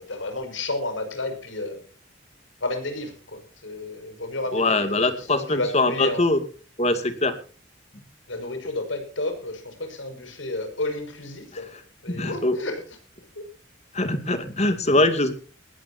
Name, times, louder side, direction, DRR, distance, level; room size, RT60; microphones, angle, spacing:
voice 1, 0.0-1.8 2.6-4.9 5.1-6.2 8.3-11.7 12.0-12.8 13.4-13.5, left 2 dB, 90° left, 6 dB, 6.0 m, -31 dB
voice 2, 4.5-6.4 6.8-7.3 11.5-11.6 12.1-12.6 13.9-15.4, left 2 dB, 35° left, 9 dB, 2.4 m, -22 dB
20.0 x 17.0 x 2.8 m, 0.38 s
head